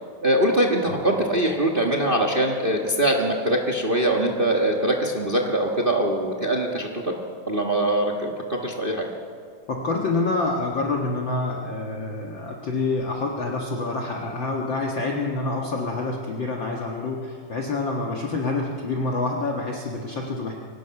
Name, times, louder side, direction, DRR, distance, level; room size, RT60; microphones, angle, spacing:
voice 1, 0.2-7.1 7.5-9.0, right 1 dB, 60° right, 2 dB, 0.5 m, -22 dB
voice 2, 9.7-20.5, left 3 dB, 45° left, 0 dB, 1.8 m, -27 dB
24.5 x 18.0 x 5.9 m, 2.1 s
omnidirectional pair, 3.6 m